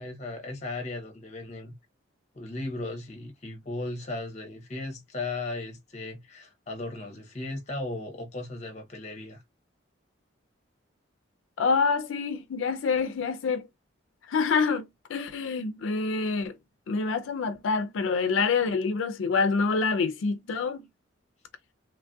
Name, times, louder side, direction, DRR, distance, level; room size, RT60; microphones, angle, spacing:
voice 1, 0.0-1.7 2.3-9.4, left 2 dB, 35° left, 0.6 m, -36 dB
voice 2, 11.6-13.7 14.3-14.8 15.1-16.6 16.9-20.8, left 4 dB, 80° left, 0.4 m, -26 dB
3.1 x 2.6 x 2.2 m
head